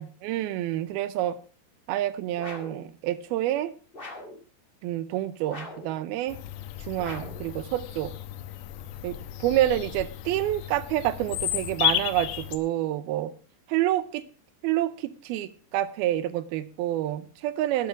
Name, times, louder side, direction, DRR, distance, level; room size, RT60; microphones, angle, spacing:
voice 1, 0.0-1.4 1.9-3.7 4.8-6.4 6.9-8.1 9.0-13.3 13.7-14.2 14.6-17.9, right 13 dB, 80° right, 2.4 m, -28 dB
sound 1, 2.4-2.8 3.9-4.4 5.5-5.9 7.0-7.5, left 2 dB, 40° left, 0.7 m, -41 dB
Bird vocalization bird call bird song, 6.3-12.6, left 11 dB, 90° left, 3.3 m, -33 dB
12.0 x 8.8 x 5.9 m
omnidirectional pair, 4.9 m